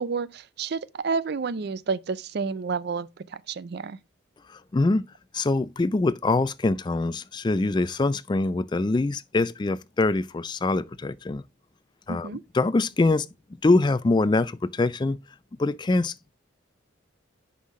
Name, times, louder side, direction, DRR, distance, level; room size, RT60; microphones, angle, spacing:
voice 1, 0.0-4.0 12.1-12.4, right 5 dB, 55° right, 0.4 m, -30 dB
voice 2, 4.5-5.0 5.3-11.4 12.1-13.3 13.6-15.2 15.6-16.1, left 2 dB, 20° left, 0.3 m, -24 dB
9.8 x 5.7 x 3.1 m
head